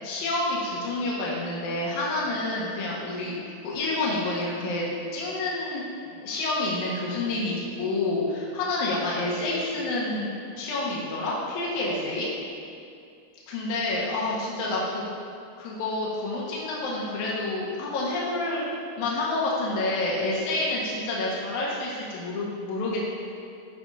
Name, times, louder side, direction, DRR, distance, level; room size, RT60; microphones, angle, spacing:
voice 1, 0.0-3.3 3.6-4.8 5.1-12.3 13.5-15.0 15.6-23.0, left 2 dB, 75° left, -5 dB, 2.4 m, -28 dB
13.0 x 5.2 x 2.4 m, 2.5 s
omnidirectional pair, 3.5 m